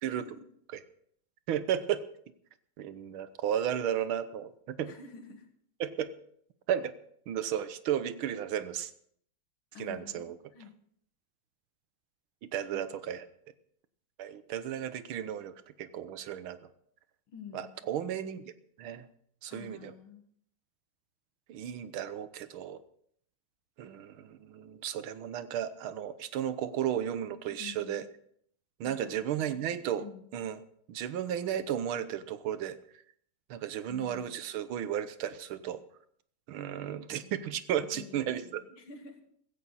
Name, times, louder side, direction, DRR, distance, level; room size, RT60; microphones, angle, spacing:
voice 1, 0.1-0.4 4.8-5.5 9.7-10.7 12.7-13.0 17.3-17.7 18.0-18.2 19.5-20.2 27.5-28.0 28.8-30.3 33.7-34.4 37.1-37.3 37.9-39.2, left 6 dB, 85° left, 4 dB, 2.8 m, -49 dB
voice 2, 1.5-2.0 2.8-4.9 5.8-6.1 6.7-6.9 7.3-8.9 9.8-10.4 12.4-13.2 14.2-16.6 17.5-18.4 18.8-19.1 19.4-19.9 21.5-22.8 23.8-28.1 28.8-30.0 30.3-30.6 30.9-32.8 33.5-35.8 36.5-38.6, right 10 dB, 85° right, 13 dB, 1.8 m, -34 dB
16.0 x 14.5 x 4.1 m, 0.66 s
omnidirectional pair, 2.2 m